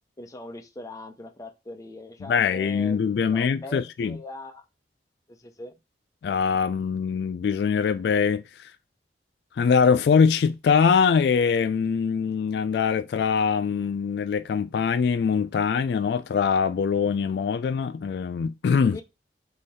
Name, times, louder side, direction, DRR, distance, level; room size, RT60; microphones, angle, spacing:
voice 1, 0.2-4.6 5.3-5.7 18.9-19.0, left 1 dB, 20° left, 0.6 m, -41 dB
voice 2, 2.2-4.2 6.2-8.7 9.5-19.0, left 6 dB, 70° left, 0.3 m, -23 dB
3.8 x 3.2 x 4.1 m
head